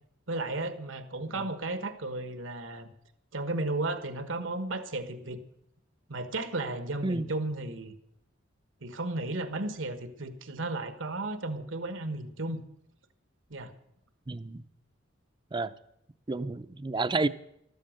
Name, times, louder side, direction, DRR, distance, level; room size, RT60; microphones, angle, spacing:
voice 1, 0.3-2.9 3.3-5.4 6.1-7.9 8.8-12.6 13.5-13.7, right 2 dB, 80° right, 10 dB, 1.5 m, -34 dB
voice 2, 14.3-14.6 15.5-15.7 16.3-17.3, right 3 dB, 25° right, 14 dB, 0.5 m, -30 dB
14.0 x 13.0 x 6.5 m, 0.78 s
head